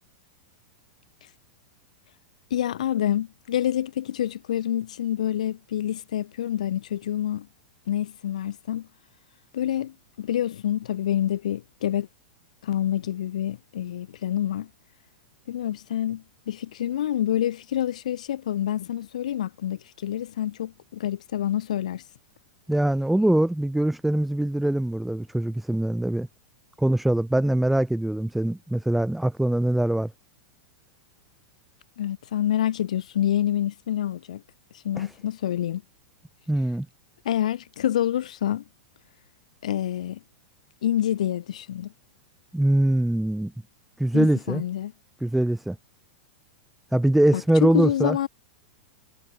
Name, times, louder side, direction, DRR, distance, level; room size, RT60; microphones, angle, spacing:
voice 1, 2.5-7.5 7.9-8.9 9.5-12.1 12.6-14.7 15.5-22.0 32.0-34.4 34.8-35.8 37.2-38.6 39.6-40.2 40.8-41.9 44.1-44.9 47.3-48.3, left 11 dB, 60° left, 0.9 m, -27 dB
voice 2, 22.7-26.3 26.8-30.1 35.0-35.1 36.5-36.9 42.5-43.5 44.0-44.6 45.2-45.8 46.9-48.2, right 1 dB, 5° right, 3.0 m, -23 dB
figure-of-eight pair, 95°, 4 cm